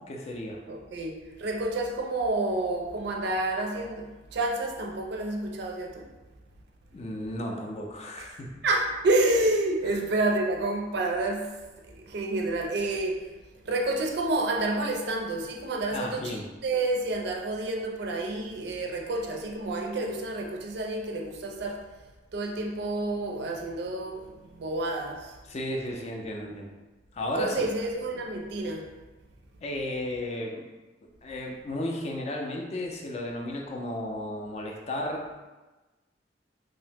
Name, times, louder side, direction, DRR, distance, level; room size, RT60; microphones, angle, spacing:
voice 1, 0.0-0.6 6.9-8.5 15.9-16.5 25.5-26.7 27.1-27.6 29.6-30.6 31.2-35.4, left 1 dB, 35° left, 1 dB, 0.4 m, -34 dB
voice 2, 0.7-6.1 8.2-8.4 8.6-22.1 22.3-25.5 25.9-26.0 26.5-26.6 27.3-29.0, right 2 dB, 60° right, 1 dB, 0.4 m, -29 dB
2.7 x 2.1 x 3.3 m, 1.2 s
head